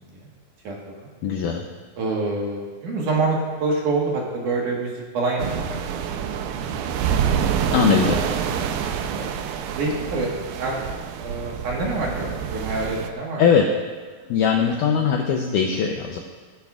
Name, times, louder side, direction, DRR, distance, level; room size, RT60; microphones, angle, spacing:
voice 1, 0.6-1.1 2.0-6.7 8.0-8.5 9.1-9.3 9.8-10.3 10.6-10.8 11.2-13.4, right 3 dB, 60° right, -2 dB, 2.7 m, -27 dB
voice 2, 1.2-1.7 7.7-8.2 13.4-13.7 14.3-16.2, left 6 dB, 80° left, 2 dB, 1.8 m, -20 dB
sound 1, 5.4-13.1, right 8 dB, 85° right, 2.5 m, -27 dB
19.0 x 9.5 x 2.4 m, 1.5 s
omnidirectional pair, 4.4 m